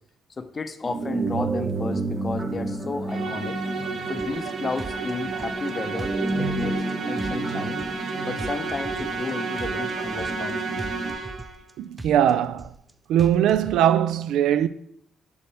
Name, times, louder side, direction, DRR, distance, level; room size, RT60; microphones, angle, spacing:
voice 1, 0.4-3.6 4.1-7.8 8.3-10.8, left 4 dB, 35° left, 0.6 m, -33 dB
sound 1, 0.8-11.1, right 2 dB, 35° right, 1.1 m, -31 dB
Musical instrument, 3.1-11.6, right 4 dB, 55° right, 0.9 m, -32 dB
sound 2, 4.2-4.5 4.8-5.7 6.0-6.9 7.2-8.1 8.4-9.3 9.6-10.5 10.8-11.7 12.0-12.9 13.2-13.8, right 2 dB, 15° right, 0.5 m, -39 dB
voice 2, 11.8-12.7 13.1-14.7, right 10 dB, 85° right, 0.3 m, -20 dB
7.0 x 6.4 x 3.4 m
cardioid pair, 90°, 0 cm